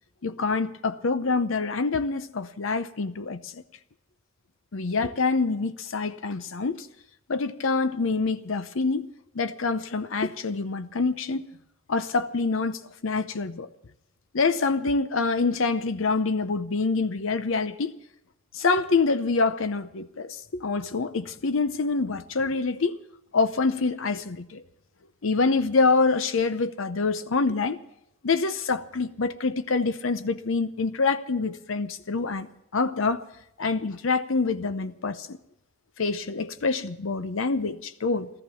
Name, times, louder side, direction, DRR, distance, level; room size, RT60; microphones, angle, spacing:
voice 1, 0.2-3.6 4.7-6.9 7.3-9.1 9.3-11.5 11.9-13.7 14.3-17.9 18.5-23.0 23.3-24.6 25.2-27.8 28.2-33.2 33.6-35.4 36.0-38.3, left 4 dB, 65° left, 0.7 m, -26 dB
14.5 x 14.0 x 7.0 m
head